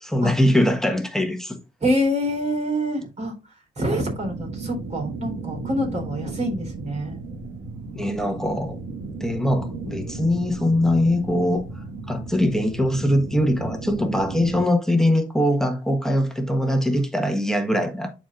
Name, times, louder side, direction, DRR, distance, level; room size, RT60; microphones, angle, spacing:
voice 1, 0.0-1.6 7.9-8.8 9.2-11.6 12.1-18.1, left 1 dB, 5° left, 1.3 m, -22 dB
voice 2, 1.8-3.3 3.8-7.2, equal, 40° right, 3.9 m, -26 dB
sound 1, 3.9-14.6, right 3 dB, 85° right, 1.7 m, -35 dB
11.0 x 4.3 x 2.5 m
cardioid pair, 85°, 18 cm